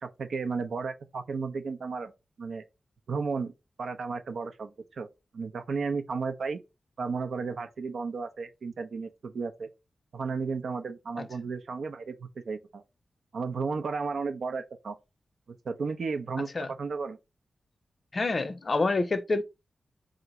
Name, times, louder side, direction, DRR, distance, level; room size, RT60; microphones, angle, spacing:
voice 1, 0.0-2.1 2.4-2.6 3.1-3.5 3.8-5.1 5.3-6.6 7.0-9.7 10.1-12.8 13.3-15.0 15.6-17.2, right 4 dB, 80° right, 0.5 m, -33 dB
voice 2, 18.1-19.4, left 3 dB, 50° left, 0.5 m, -27 dB
2.9 x 2.5 x 4.1 m
cardioid pair, 55°, 0 cm